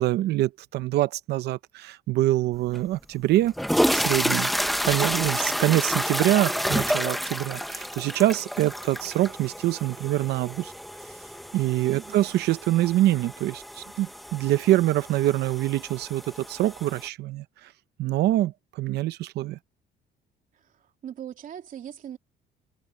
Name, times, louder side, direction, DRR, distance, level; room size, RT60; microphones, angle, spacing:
voice 1, 0.0-3.5 3.9-4.5 4.8-10.7 11.5-17.7 18.0-19.6, right 15 dB, 75° right, 0.8 m, -25 dB
sound 1, 2.7-2.8 3.4-17.1, equal, ahead, 1.0 m, -30 dB
voice 2, 11.9-12.3 20.6-20.7 21.0-22.2, right 10 dB, 55° right, 3.4 m, -40 dB
cardioid pair, 110°, 17 cm